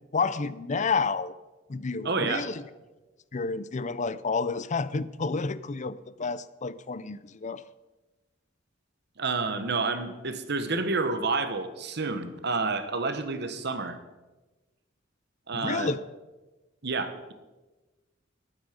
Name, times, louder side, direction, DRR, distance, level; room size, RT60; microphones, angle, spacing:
voice 1, 0.1-1.3 1.7-2.6 3.3-7.6 15.5-16.0, left 4 dB, 35° left, 17 dB, 0.5 m, -30 dB
voice 2, 2.0-2.5 9.2-14.0 15.5-15.9 16.8-17.3, right 3 dB, 60° right, 9 dB, 1.3 m, -29 dB
20.0 x 9.0 x 5.2 m, 1.1 s
head